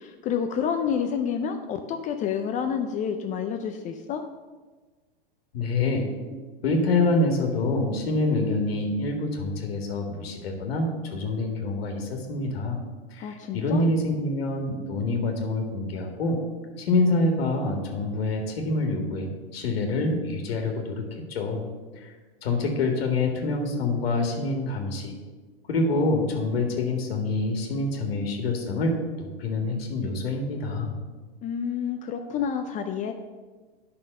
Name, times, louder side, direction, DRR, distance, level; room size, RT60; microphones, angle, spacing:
voice 1, 0.0-4.2 13.2-13.9 31.4-33.1, left 7 dB, 25° left, 6 dB, 0.5 m, -29 dB
voice 2, 5.5-6.1 6.6-12.8 13.1-16.4 16.8-21.6 22.0-22.1 22.4-25.1 25.7-30.9, left 2 dB, 80° left, 2 dB, 1.8 m, -26 dB
9.1 x 5.6 x 6.5 m, 1.3 s
hypercardioid pair, 130°, 30 cm